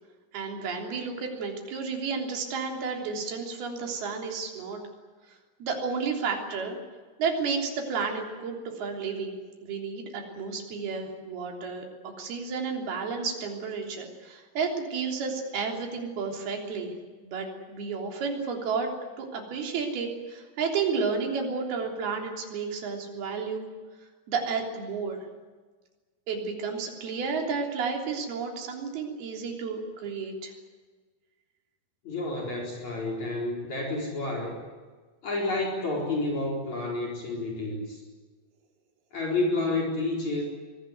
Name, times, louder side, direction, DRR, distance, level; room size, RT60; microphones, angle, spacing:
voice 1, 0.3-4.8 5.6-6.8 7.2-9.4 9.6-16.9 17.2-18.9 19.2-23.7 24.3-25.3 26.3-30.5, right 5 dB, 70° right, 2 dB, 5.3 m, -32 dB
voice 2, 32.0-34.6 35.2-38.0 39.1-40.4, left 2 dB, 45° left, -2 dB, 5.5 m, -30 dB
24.5 x 19.0 x 9.5 m, 1.4 s
omnidirectional pair, 4.7 m